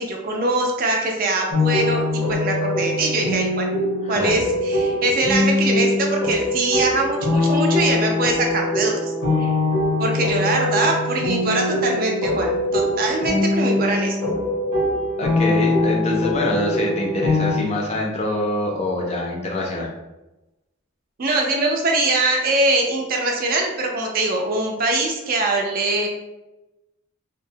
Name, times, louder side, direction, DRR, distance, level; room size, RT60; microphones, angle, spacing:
voice 1, 0.0-3.7 4.1-9.0 9.4-9.5 10.0-14.2 21.2-26.1, right 2 dB, 45° right, 1 dB, 0.4 m, -22 dB
sound 1, 1.5-17.5, left 2 dB, 90° left, 0.9 m, -22 dB
voice 2, 4.0-4.4 15.2-19.9, left 1 dB, 30° left, -1 dB, 0.4 m, -25 dB
2.8 x 2.0 x 2.6 m, 0.98 s
head